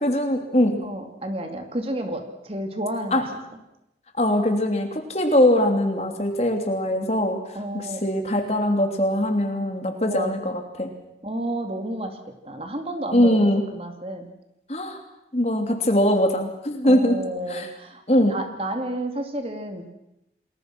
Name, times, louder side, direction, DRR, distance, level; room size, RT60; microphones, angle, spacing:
voice 1, 0.0-0.8 3.1-3.2 4.2-7.4 8.0-10.5 10.8-10.9 13.1-13.6 14.7-15.0 15.3-17.2 17.5-17.7 18.1-18.3, left 1 dB, 35° left, 4 dB, 3.1 m, -21 dB
voice 2, 0.8-3.4 7.5-8.0 10.1-10.3 11.2-12.2 12.4-14.3 16.8-19.9, right 1 dB, 35° right, 5 dB, 2.6 m, -31 dB
29.5 x 21.0 x 6.2 m, 0.88 s
head